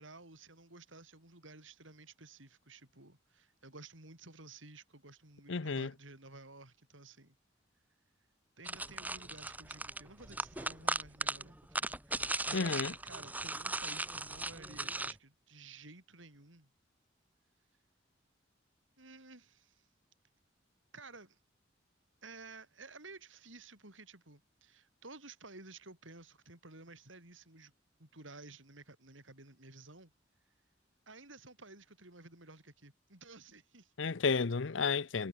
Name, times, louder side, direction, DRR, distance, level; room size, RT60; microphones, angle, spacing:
voice 1, 0.0-7.4 8.6-16.7 19.0-19.9 20.9-21.4 22.2-27.7 28.0-30.1 31.1-33.9, right 3 dB, 90° right, 7.1 m, -54 dB
voice 2, 5.5-5.9 12.5-12.9 34.0-35.3, left 5 dB, 80° left, 0.7 m, -32 dB
sound 1, 8.6-15.1, right 2 dB, 10° right, 3.5 m, -38 dB
head